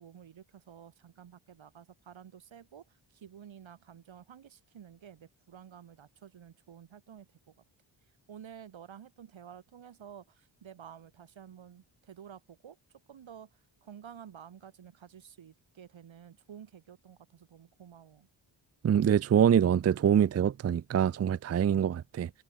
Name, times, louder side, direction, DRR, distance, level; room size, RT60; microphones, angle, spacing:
voice 1, 0.0-7.5 8.3-18.3, right 8 dB, 85° right, 4.4 m, -51 dB
voice 2, 18.8-22.3, right 8 dB, 35° right, 0.4 m, -25 dB
cardioid pair, 70°, 45 cm